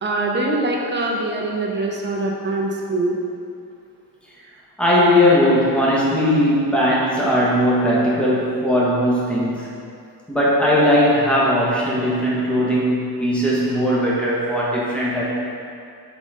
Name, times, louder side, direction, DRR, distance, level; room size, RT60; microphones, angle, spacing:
voice 1, 0.0-3.2, right 2 dB, 30° right, -1 dB, 0.8 m, -23 dB
voice 2, 4.8-9.7 10.3-15.2, equal, 5° left, -7 dB, 1.3 m, -18 dB
5.4 x 4.0 x 5.0 m, 2.4 s
cardioid pair, 125°, 39 cm